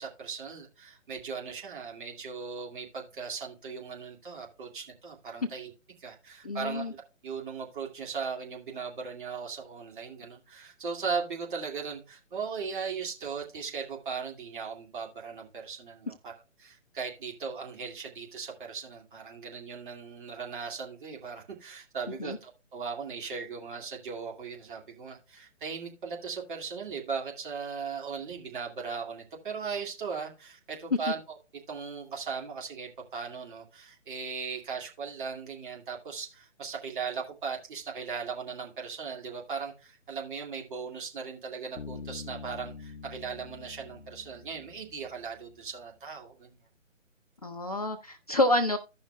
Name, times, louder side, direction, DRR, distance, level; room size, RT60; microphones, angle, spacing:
voice 1, 0.0-5.7 6.0-7.0 7.2-16.3 16.6-31.2 31.7-46.6, right 5 dB, 40° right, 2.2 m, -38 dB
voice 2, 6.4-6.9 22.2-22.4 47.4-48.8, left 1 dB, 30° left, 0.4 m, -28 dB
Bass guitar, 41.8-45.5, left 5 dB, 80° left, 0.9 m, -45 dB
15.5 x 5.5 x 2.2 m
figure-of-eight pair, 140°, 39 cm